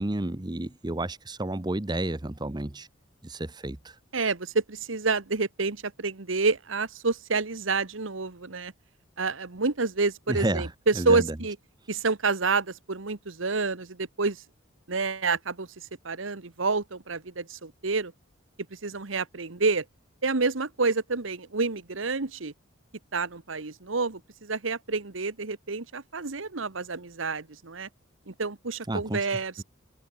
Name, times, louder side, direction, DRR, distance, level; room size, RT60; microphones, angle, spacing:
voice 1, 0.0-2.9 3.2-3.9 10.3-10.7 10.9-11.4 28.9-29.2, right 1 dB, 20° right, 0.9 m, -31 dB
voice 2, 4.1-8.7 9.2-11.6 11.9-14.4 14.9-15.7 16.0-18.1 18.8-19.8 20.2-22.5 23.1-27.9 28.3-29.6, right 4 dB, 80° right, 1.3 m, -28 dB
open air
head